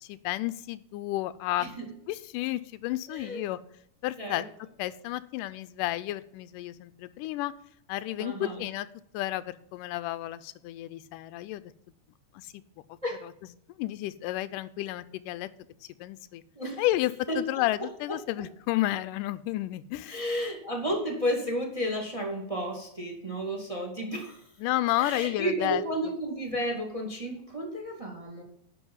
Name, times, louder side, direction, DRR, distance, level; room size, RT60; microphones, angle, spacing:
voice 1, 0.0-1.7 2.1-3.6 4.0-4.4 4.8-7.5 7.9-8.9 9.1-11.7 12.3-12.6 13.8-15.5 15.8-16.4 16.8-20.2 24.6-25.8, left 16 dB, 90° left, 14 dB, 2.2 m, -31 dB
voice 2, 1.6-1.9 3.1-3.4 4.2-4.4 8.2-8.6 13.0-13.3 16.5-16.8 17.3-17.4 20.1-24.4 25.0-28.4, equal, 10° right, 2 dB, 1.8 m, -32 dB
11.0 x 5.7 x 7.2 m, 0.70 s
omnidirectional pair, 3.7 m